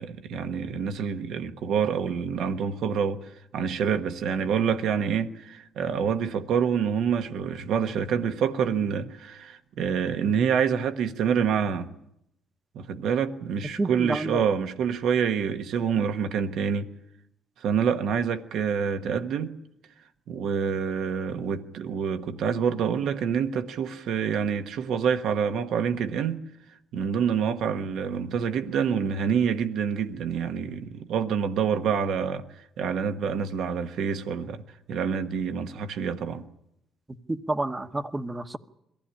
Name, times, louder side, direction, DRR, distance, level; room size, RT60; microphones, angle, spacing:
voice 1, 0.0-11.9 12.7-16.9 17.6-19.5 20.3-26.4 26.9-34.6 34.9-36.5, right 7 dB, 80° right, 1.3 m, -27 dB
voice 2, 13.8-14.4 37.3-38.6, right 2 dB, 20° right, 1.1 m, -29 dB
22.5 x 16.0 x 10.0 m
cardioid pair, 90°, 0 cm